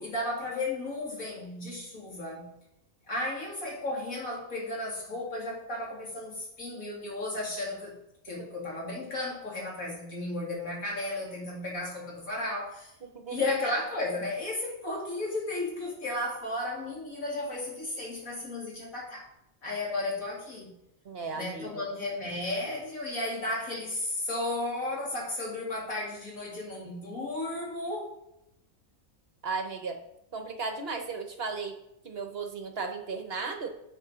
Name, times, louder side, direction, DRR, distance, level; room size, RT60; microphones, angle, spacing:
voice 1, 0.0-2.5 3.1-8.0 8.2-12.9 13.3-19.3 19.6-20.7 21.3-28.1, left 2 dB, 80° left, -3 dB, 3.0 m, -34 dB
voice 2, 13.0-13.4 21.0-21.8 29.4-30.0 30.3-31.8 32.0-33.7, right 4 dB, 50° right, 5 dB, 1.0 m, -35 dB
10.5 x 5.4 x 4.9 m, 0.83 s
omnidirectional pair, 1.4 m